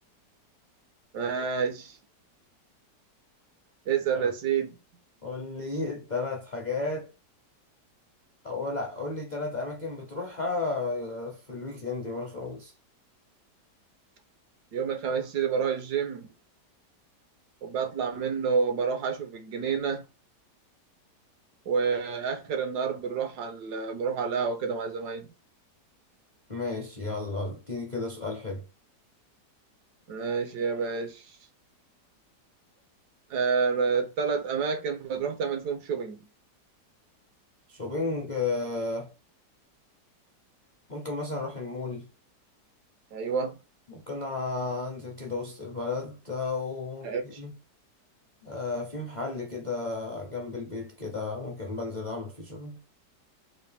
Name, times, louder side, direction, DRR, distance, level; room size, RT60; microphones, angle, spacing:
voice 1, 1.1-2.0 3.9-4.8 14.7-16.3 17.6-20.0 21.7-25.3 30.1-31.2 33.3-36.2 43.1-43.5 47.0-47.2, right 6 dB, 75° right, 1.3 m, -29 dB
voice 2, 5.2-7.1 8.4-12.7 26.5-28.6 37.7-39.1 40.9-42.1 43.9-47.5 48.4-52.8, left 3 dB, 40° left, 0.6 m, -33 dB
4.0 x 2.5 x 3.3 m
omnidirectional pair, 1.9 m